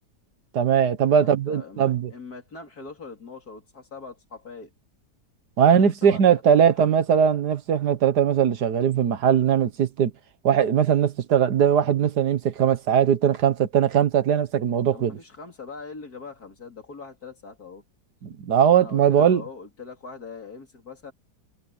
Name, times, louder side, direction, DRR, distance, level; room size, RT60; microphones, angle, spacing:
voice 1, 0.5-2.1 5.6-10.1 10.4-15.2 18.2-19.4, right 8 dB, 70° right, 1.7 m, -20 dB
voice 2, 1.2-4.7 5.6-6.9 14.9-17.8 18.8-21.1, left 4 dB, 60° left, 3.9 m, -42 dB
omnidirectional pair, 1.8 m